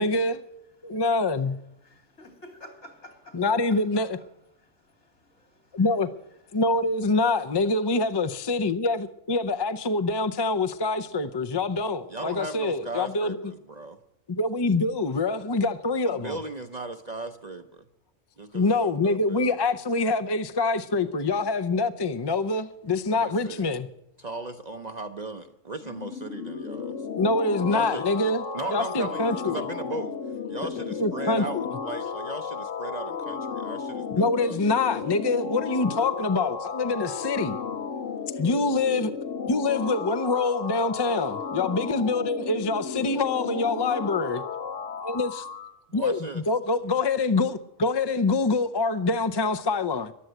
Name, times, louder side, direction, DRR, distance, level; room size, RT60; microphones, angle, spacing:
voice 1, 0.0-0.4 0.8-1.6 3.3-4.2 5.7-6.1 6.5-13.4 14.3-16.4 18.5-23.9 27.2-28.4 28.7-29.6 30.8-31.7 34.1-37.6 38.4-39.1 39.5-44.4 45.0-45.5 45.9-50.1, left 3 dB, 30° left, 0.4 m, -25 dB
voice 2, 1.8-4.0 4.5-5.8 6.5-6.6, left 1 dB, 65° left, 3.2 m, -50 dB
voice 3, 12.1-14.0 16.0-17.8 18.4-19.6 23.1-23.7 24.2-27.0 27.7-30.2 30.5-34.6 45.9-46.4, right 2 dB, 40° right, 0.7 m, -37 dB
sound 1, 25.8-45.7, left 6 dB, 80° left, 1.5 m, -34 dB
14.0 x 11.5 x 7.9 m
omnidirectional pair, 1.3 m